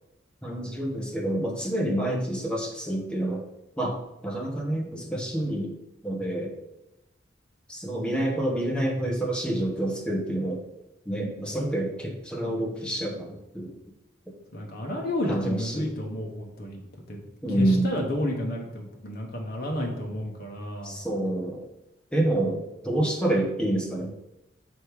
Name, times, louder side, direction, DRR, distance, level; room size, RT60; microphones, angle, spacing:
voice 1, 0.4-3.4 3.8-4.0 4.2-5.7 6.0-6.5 7.7-10.6 11.1-13.7 15.3-15.9 17.4-18.1 20.8-21.7 22.1-24.1, right 1 dB, 5° left, 0 dB, 1.0 m, -28 dB
voice 2, 14.5-16.8 17.1-17.2 17.5-21.0, left 1 dB, 50° left, 0 dB, 1.0 m, -31 dB
6.4 x 3.5 x 4.7 m, 0.95 s
head